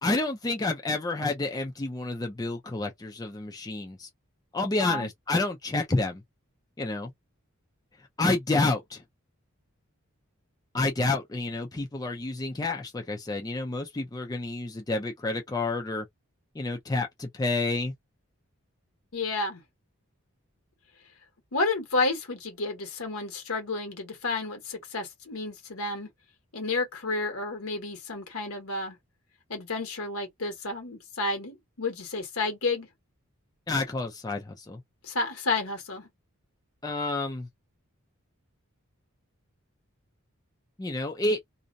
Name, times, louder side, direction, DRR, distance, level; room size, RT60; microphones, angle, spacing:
voice 1, 0.0-4.1 4.5-6.2 6.8-7.1 8.2-9.0 10.7-16.1 16.6-17.9 33.7-34.8 36.8-37.5 40.8-41.4, left 2 dB, 15° left, 0.4 m, -29 dB
voice 2, 19.1-19.6 21.5-26.1 26.5-29.0 29.5-32.9 35.0-36.1, left 3 dB, 80° left, 1.2 m, -31 dB
2.5 x 2.1 x 2.5 m
head